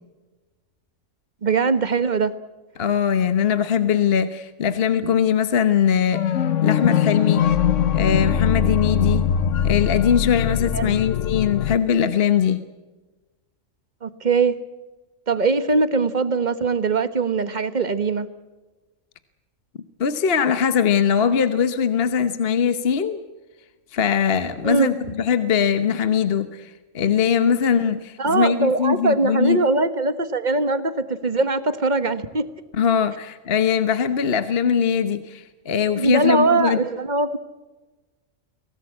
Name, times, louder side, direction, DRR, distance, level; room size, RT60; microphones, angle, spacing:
voice 1, 1.4-2.3 10.7-11.0 14.0-14.6 15.3-18.3 24.6-24.9 28.2-32.5 36.0-37.4, right 3 dB, 35° right, 12 dB, 1.4 m, -21 dB
voice 2, 2.8-6.2 6.6-7.5 7.9-9.3 9.6-12.6 20.0-23.2 23.9-29.6 32.8-36.8, left 7 dB, 50° left, 11 dB, 1.2 m, -21 dB
sound 1, 6.1-11.8, left 8 dB, 70° left, 1.2 m, -21 dB
24.0 x 18.0 x 8.5 m, 1.2 s
omnidirectional pair, 1.4 m